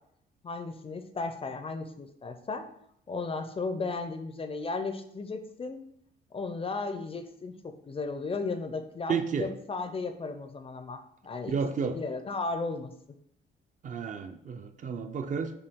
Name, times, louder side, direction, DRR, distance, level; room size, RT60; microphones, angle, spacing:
voice 1, 0.4-2.7 3.1-5.8 6.3-11.5 11.8-12.9, left 3 dB, 30° left, 8 dB, 0.4 m, -35 dB
voice 2, 9.1-9.5 11.5-12.0 13.8-15.5, right 6 dB, 40° right, 7 dB, 0.4 m, -31 dB
5.4 x 2.3 x 3.5 m, 0.72 s
cardioid pair, 90°, 20 cm